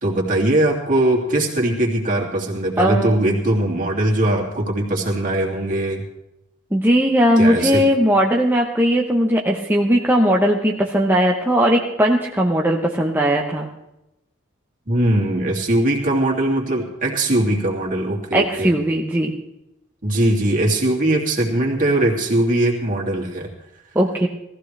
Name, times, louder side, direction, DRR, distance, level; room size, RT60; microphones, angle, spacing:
voice 1, 0.0-6.0 7.4-7.8 14.9-18.7 20.0-23.5, right 1 dB, 40° right, -1 dB, 2.8 m, -20 dB
voice 2, 2.8-3.2 6.7-13.7 18.3-19.4 23.9-24.3, equal, 10° right, -1 dB, 1.0 m, -18 dB
18.5 x 15.0 x 3.4 m, 0.89 s
head